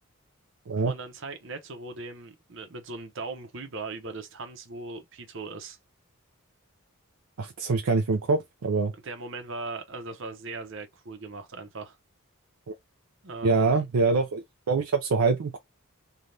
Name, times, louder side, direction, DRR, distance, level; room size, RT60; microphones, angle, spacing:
voice 1, 0.9-5.8 8.9-12.0 13.2-13.9, right 3 dB, 60° right, 0.8 m, -39 dB
voice 2, 7.4-8.9 13.4-15.6, right 4 dB, 80° right, 0.5 m, -24 dB
3.3 x 2.4 x 2.6 m
head